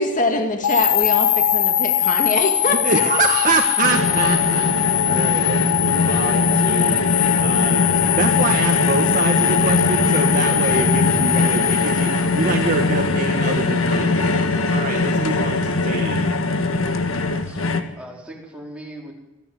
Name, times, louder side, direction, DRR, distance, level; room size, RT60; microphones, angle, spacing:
voice 1, 0.0-2.8 3.1-3.3, left 2 dB, 35° left, 4 dB, 2.1 m, -23 dB
sound 1, 0.6-12.8, left 10 dB, 80° left, 1.4 m, -21 dB
voice 2, 2.7-4.7 5.0-16.3, right 3 dB, 40° right, 3 dB, 1.6 m, -25 dB
sound 2, 3.8-17.8, left 3 dB, 65° left, 1.7 m, -21 dB
voice 3, 17.4-19.1, equal, 5° right, -2 dB, 4.6 m, -38 dB
24.0 x 15.0 x 7.9 m, 1.0 s
head